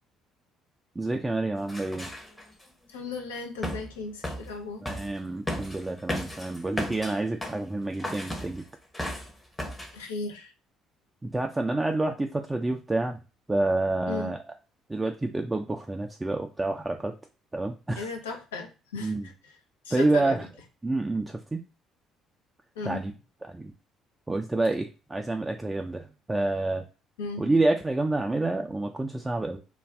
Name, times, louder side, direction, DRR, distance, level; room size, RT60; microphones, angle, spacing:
voice 1, 1.0-2.1 4.8-8.7 11.2-13.2 13.5-14.4 14.9-17.1 17.5-18.1 19.0-19.3 19.9-20.5 20.8-21.6 22.8-23.1 23.5-23.7 24.3-26.8 27.4-29.6, right 2 dB, 15° right, 3 dB, 0.4 m, -28 dB
sound 1, 1.7-2.6 3.6-3.9 4.2-4.5 4.8-5.1 5.5-7.6 8.0-8.6 8.9-9.3 9.6-9.9, left 1 dB, 15° left, 0.8 m, -35 dB
voice 2, 2.9-4.8 9.9-10.5 14.1-14.3 18.0-19.1 19.4-19.5 19.8-20.5 22.8-23.0 27.2-27.5, left 3 dB, 80° left, 3 dB, 0.6 m, -36 dB
2.4 x 2.3 x 3.3 m, 0.31 s
figure-of-eight pair, 50°, 0 cm